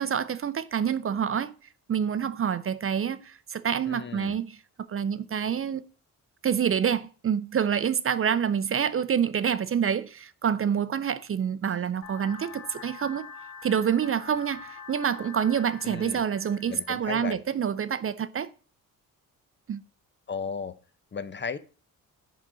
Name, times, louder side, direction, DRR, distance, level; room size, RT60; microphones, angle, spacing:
voice 1, 0.0-1.5 1.9-4.6 4.9-5.8 6.4-13.3 13.6-18.5 19.7-19.8, right 8 dB, 40° right, 0.5 m, -27 dB
voice 2, 3.9-4.4 15.8-16.2 16.7-17.4 20.3-20.8 21.1-21.6, left 5 dB, 30° left, 0.7 m, -35 dB
sound 1, 12.0-17.0, left 5 dB, 80° left, 2.1 m, -45 dB
10.0 x 4.0 x 6.2 m
cardioid pair, 105°, 35 cm